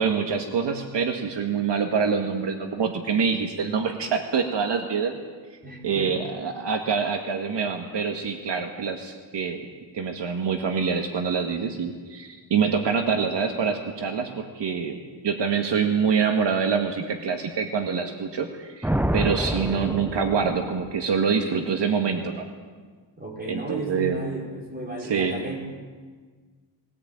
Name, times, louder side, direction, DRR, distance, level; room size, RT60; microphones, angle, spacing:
voice 1, 0.0-5.2 5.8-9.7 9.9-15.0 15.2-22.5 23.5-24.2 25.0-25.4, right 6 dB, 65° right, 4 dB, 1.9 m, -25 dB
voice 2, 5.6-6.2 23.2-25.6, right 2 dB, 20° right, -1 dB, 5.5 m, -34 dB
Thunder, 18.8-21.0, right 1 dB, 5° right, 0.7 m, -27 dB
21.0 x 18.5 x 9.0 m, 1.5 s
wide cardioid pair, 120°, 45 cm